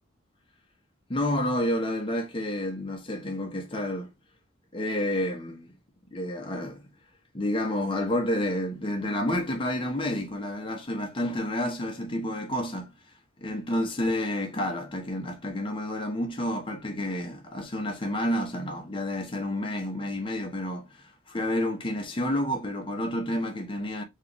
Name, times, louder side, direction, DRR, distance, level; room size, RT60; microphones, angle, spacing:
voice 1, 1.1-4.1 4.7-5.7 6.1-6.8 7.3-12.9 13.4-24.0, left 1 dB, 30° left, 0.9 m, -30 dB
4.7 x 3.0 x 3.3 m
head